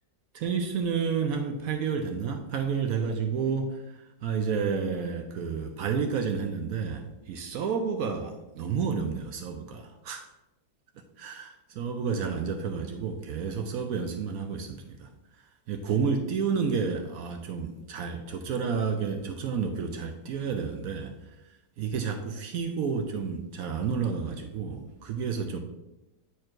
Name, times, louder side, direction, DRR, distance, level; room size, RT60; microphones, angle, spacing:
voice 1, 0.3-10.3 11.2-15.1 15.7-21.4 21.8-25.6, right 6 dB, 70° right, 5 dB, 0.9 m, -30 dB
9.5 x 4.5 x 2.5 m, 0.95 s
omnidirectional pair, 1.8 m